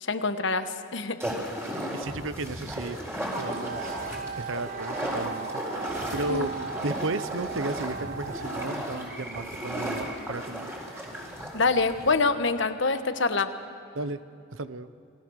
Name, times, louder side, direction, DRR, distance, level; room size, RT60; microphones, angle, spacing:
voice 1, 0.0-1.2 6.3-6.5 11.5-13.5, left 3 dB, 65° left, 9 dB, 1.3 m, -25 dB
sound 1, 1.2-12.2, equal, 15° right, 4.3 m, -35 dB
voice 2, 1.9-3.0 3.4-4.0 4.3-10.7 13.9-14.2 14.5-14.9, right 2 dB, 85° right, 13 dB, 0.9 m, -34 dB
Wind instrument woodwind instrument, 3.3-9.2, right 6 dB, 50° right, 0.5 m, -38 dB
28.0 x 20.5 x 6.5 m, 2.6 s
head